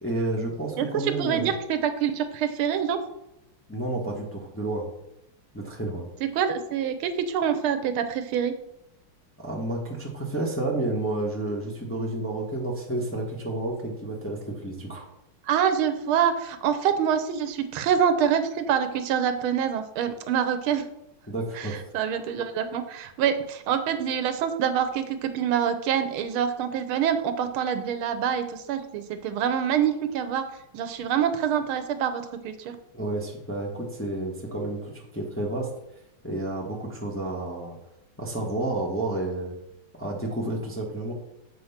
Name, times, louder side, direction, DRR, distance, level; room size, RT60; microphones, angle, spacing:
voice 1, 0.0-1.5 3.7-4.9 5.5-6.1 9.4-15.0 21.3-21.8 32.9-35.7 36.2-37.8 38.2-39.6 40.0-41.1, right 2 dB, 10° left, -2 dB, 0.9 m, -30 dB
voice 2, 0.8-3.0 6.2-8.5 15.5-20.9 21.6-30.5 30.7-32.8, right 8 dB, 80° right, 10 dB, 1.5 m, -26 dB
7.8 x 4.6 x 5.7 m, 0.86 s
omnidirectional pair, 2.3 m